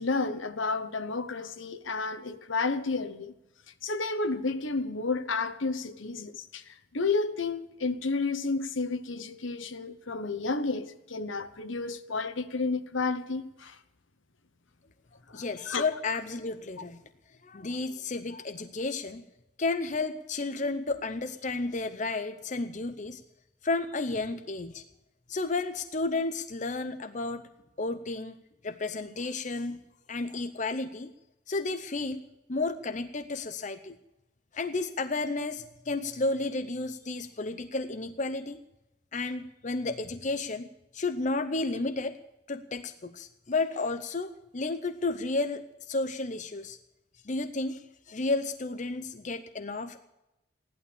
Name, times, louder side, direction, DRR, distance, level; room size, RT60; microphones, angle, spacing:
voice 1, 0.0-3.3 3.8-13.8 15.3-15.8, left 3 dB, 70° left, 1.0 m, -31 dB
voice 2, 15.3-17.0 17.4-19.2 19.6-23.2 23.6-24.8 25.3-27.5 27.8-28.4 28.6-29.8 30.1-31.1 31.5-32.2 32.5-34.0 34.5-38.6 39.1-40.7 40.9-42.2 42.5-46.8 47.2-50.0, left 3 dB, 35° left, 0.7 m, -32 dB
16.0 x 11.5 x 7.0 m
head